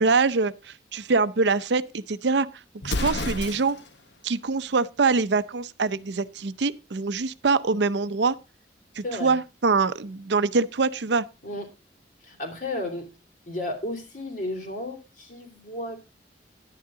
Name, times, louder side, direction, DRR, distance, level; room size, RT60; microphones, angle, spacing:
voice 1, 0.0-2.5 2.8-3.8 4.2-8.4 9.0-11.2, right 4 dB, 75° right, 0.6 m, -24 dB
Explosion, 2.8-4.0, left 2 dB, 75° left, 1.2 m, -30 dB
voice 2, 9.0-9.3 11.4-11.7 12.2-13.1 13.5-16.0, left 1 dB, 45° left, 2.8 m, -33 dB
10.5 x 9.5 x 3.7 m
head